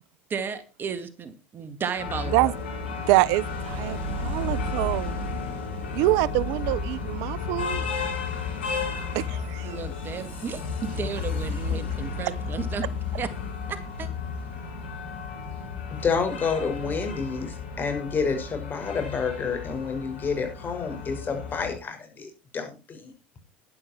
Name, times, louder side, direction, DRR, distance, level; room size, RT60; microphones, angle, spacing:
voice 1, 0.3-2.5 9.6-12.8 13.2-13.3 13.7-14.1, right 6 dB, 35° right, 2.0 m, -33 dB
sound 1, 2.0-21.8, left 4 dB, 85° left, 6.0 m, -33 dB
voice 2, 3.1-5.2 5.9-7.8 9.1-9.8, right 20 dB, 70° right, 0.5 m, -25 dB
voice 3, 15.9-23.1, left 5 dB, 30° left, 5.9 m, -29 dB
11.5 x 11.0 x 4.6 m
hypercardioid pair, 90°, 6 cm